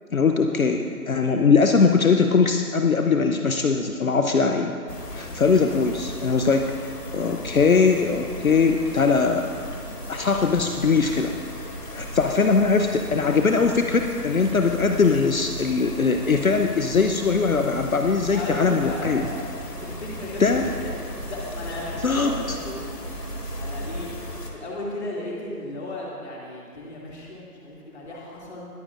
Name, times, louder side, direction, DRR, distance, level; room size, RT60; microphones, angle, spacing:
voice 1, 0.1-4.7 5.1-6.7 7.1-9.5 10.1-11.3 11.9-19.3 20.4-20.7 22.0-22.6, left 4 dB, 60° left, 5 dB, 0.8 m, -21 dB
sound 1, 4.9-24.5, left 1 dB, 85° left, 2.2 m, -36 dB
voice 2, 5.1-5.6 18.3-23.0 23.6-24.1 24.5-28.7, left 1 dB, 45° left, -4 dB, 2.6 m, -35 dB
21.5 x 12.0 x 2.5 m, 2.3 s
figure-of-eight pair, 150°, 47 cm